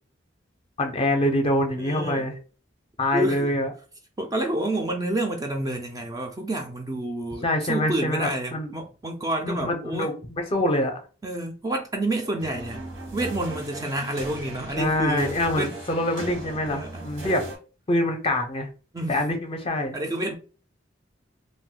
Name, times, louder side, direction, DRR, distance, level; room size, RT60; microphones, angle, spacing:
voice 1, 0.8-2.3 3.0-3.7 7.4-8.7 9.4-11.0 14.8-17.4 17.9-18.7 19.1-20.0, left 1 dB, 30° left, 0.6 m, -25 dB
voice 2, 1.8-2.3 3.1-3.5 4.2-10.1 11.2-12.8 13.1-15.7 16.7-17.0 18.9-19.2 19.9-20.3, right 1 dB, 20° right, 0.4 m, -29 dB
sound 1, 12.4-17.6, right 2 dB, 80° right, 1.1 m, -38 dB
2.5 x 2.1 x 3.7 m
head